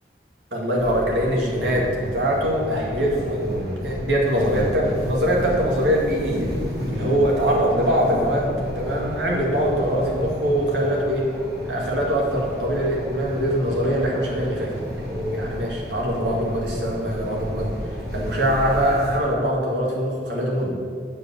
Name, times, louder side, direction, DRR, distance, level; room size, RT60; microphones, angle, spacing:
voice 1, 0.5-6.5 6.9-8.5 8.8-11.3 11.6-17.7 18.1-20.7, equal, 90° right, -3 dB, 2.0 m, -23 dB
sound 1, 0.8-19.2, equal, 75° right, 2.3 m, -32 dB
9.8 x 5.0 x 7.2 m, 2.1 s
head